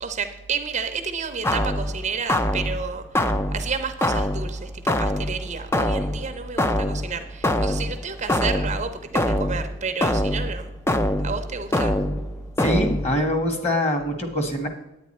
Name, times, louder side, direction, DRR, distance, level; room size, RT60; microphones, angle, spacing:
voice 1, 0.0-3.0 3.5-10.7 11.2-12.0, right 5 dB, 35° right, 8 dB, 0.6 m, -31 dB
sound 1, 1.4-13.4, left 1 dB, 10° left, 0.4 m, -25 dB
voice 2, 12.6-14.7, left 1 dB, 30° left, 5 dB, 1.4 m, -24 dB
9.3 x 9.3 x 4.2 m, 0.90 s
head